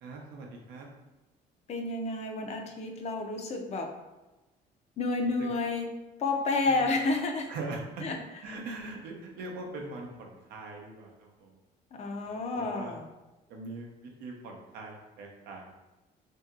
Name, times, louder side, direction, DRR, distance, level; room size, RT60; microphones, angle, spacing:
voice 1, 0.0-0.9 5.4-5.5 6.7-6.8 7.5-8.0 8.4-11.5 12.2-12.9 13.5-15.7, right 3 dB, 85° right, 0 dB, 0.7 m, -41 dB
voice 2, 1.7-3.9 5.0-5.9 6.2-7.5 8.0-8.2 11.9-13.1, left 3 dB, 40° left, 3 dB, 0.4 m, -30 dB
2.8 x 2.7 x 2.4 m, 1.1 s
cardioid pair, 110°, 17 cm